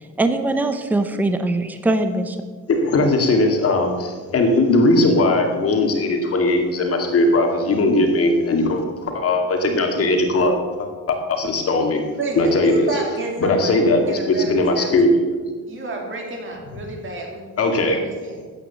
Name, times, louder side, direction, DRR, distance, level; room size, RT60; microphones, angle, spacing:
voice 1, 0.2-2.4, right 2 dB, 5° right, 8 dB, 0.7 m, -21 dB
voice 2, 2.7-12.0 12.4-12.9 13.4-15.2 17.6-18.0, left 2 dB, 45° left, 3 dB, 2.2 m, -19 dB
voice 3, 12.2-14.9 15.7-17.5 17.8-18.5, right 2 dB, 35° right, 1 dB, 3.1 m, -30 dB
14.0 x 9.5 x 7.0 m, 1.5 s
cardioid pair, 170°, 34 cm